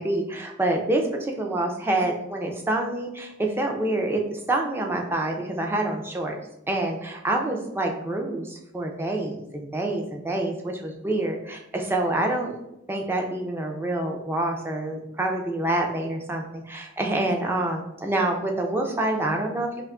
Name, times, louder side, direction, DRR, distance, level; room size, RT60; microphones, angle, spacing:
voice 1, 0.0-6.3 6.7-12.6 12.9-19.8, right 2 dB, 10° right, 1 dB, 0.3 m, -27 dB
2.6 x 2.3 x 3.6 m, 0.86 s
head